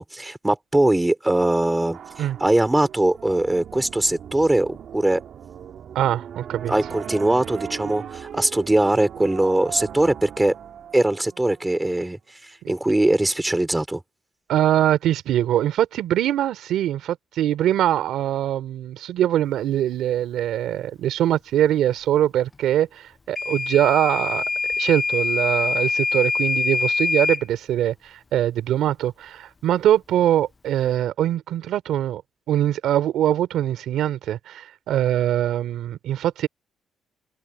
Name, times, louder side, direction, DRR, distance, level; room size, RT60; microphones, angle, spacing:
voice 1, 0.0-2.0 2.4-5.2 6.7-10.5 10.9-12.2 12.5-14.0, right 1 dB, 10° right, 4.1 m, -21 dB
sound 1, 1.9-12.0, right 8 dB, 65° right, 2.1 m, -39 dB
voice 2, 5.9-6.7 12.6-12.7 14.5-24.4 24.8-32.2 32.5-36.5, right 11 dB, 80° right, 2.7 m, -22 dB
Microwave oven / Alarm, 23.4-27.4, left 4 dB, 30° left, 0.4 m, -24 dB
open air
cardioid pair, 90°, 0 cm